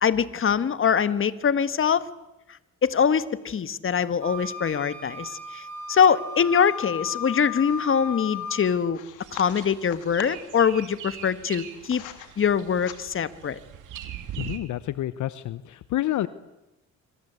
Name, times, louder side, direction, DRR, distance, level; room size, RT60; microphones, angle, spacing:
voice 1, 0.0-2.1 2.8-5.6 5.9-9.0 9.3-12.0 12.4-13.6, left 7 dB, 45° left, 14 dB, 1.6 m, -23 dB
Wind instrument woodwind instrument, 4.2-8.7, left 4 dB, 60° right, 5.9 m, -36 dB
sound 1, 8.9-10.5 11.3-12.3 12.7-13.4, left 12 dB, 90° left, 2.7 m, -42 dB
sound 2, 9.2-14.6, right 10 dB, 85° right, 3.0 m, -41 dB
voice 2, 14.4-16.3, left 14 dB, 75° left, 15 dB, 0.9 m, -29 dB
26.5 x 25.0 x 8.2 m, 0.96 s
cardioid pair, 90°, 30 cm